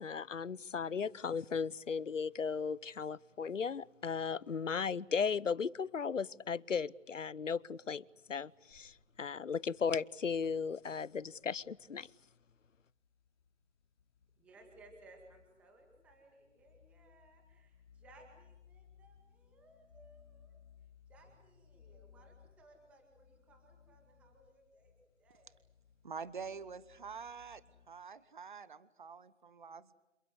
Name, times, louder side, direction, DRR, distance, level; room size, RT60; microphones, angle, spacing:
voice 1, 0.0-12.1, left 6 dB, 80° left, 0.9 m, -36 dB
sound 1, 8.7-27.9, left 7 dB, 20° left, 4.2 m, -64 dB
voice 2, 14.4-20.6 21.1-24.9 25.2-25.5, right 2 dB, 5° right, 2.0 m, -62 dB
voice 3, 26.0-29.9, right 5 dB, 40° right, 1.2 m, -46 dB
28.0 x 21.5 x 8.1 m
figure-of-eight pair, 165°, 37 cm